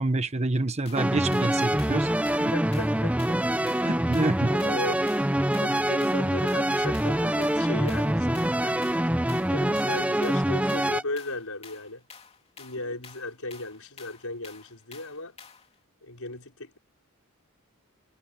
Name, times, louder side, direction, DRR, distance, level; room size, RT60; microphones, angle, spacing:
voice 1, 0.0-2.1 2.4-2.5 3.8-4.5, right 2 dB, 30° right, 1.1 m, -27 dB
sound 1, 0.9-15.8, left 6 dB, 25° left, 3.0 m, -50 dB
sound 2, 1.0-11.0, right 1 dB, 5° right, 0.7 m, -25 dB
voice 2, 2.5-3.4 3.7-3.9 4.4-5.0 5.6-12.0 12.6-15.4 16.0-16.8, left 2 dB, 75° left, 5.5 m, -37 dB
head